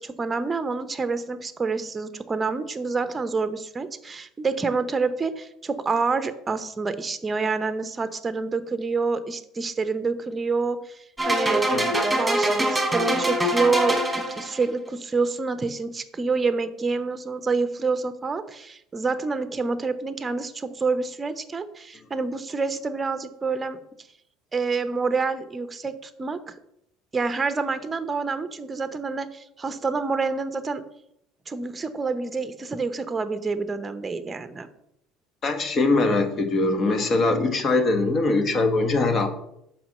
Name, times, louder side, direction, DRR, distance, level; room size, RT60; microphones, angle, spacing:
voice 1, 0.0-23.8 24.5-26.5 27.1-30.8 31.5-34.7, right 4 dB, 20° right, 11 dB, 0.8 m, -27 dB
sound 1, 11.2-14.7, right 1 dB, 5° right, 2.2 m, -23 dB
voice 2, 35.4-39.3, left 3 dB, 40° left, 7 dB, 1.3 m, -22 dB
5.8 x 4.9 x 6.6 m, 0.77 s
supercardioid pair, 95°, 0 cm